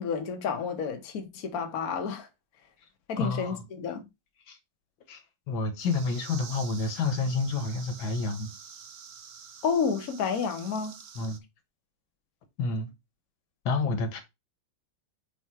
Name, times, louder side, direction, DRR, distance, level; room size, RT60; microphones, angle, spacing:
voice 1, 0.0-2.3 3.1-4.0 9.6-11.0, left 6 dB, 55° left, 1.4 m, -30 dB
voice 2, 3.2-3.6 4.5-4.6 5.1-5.2 5.5-8.5 11.2-11.4 12.6-12.9 13.7-14.2, left 3 dB, 85° left, 1.9 m, -29 dB
sound 1, 5.8-11.4, right 7 dB, 80° right, 0.5 m, -47 dB
4.6 x 4.4 x 4.7 m
omnidirectional pair, 2.1 m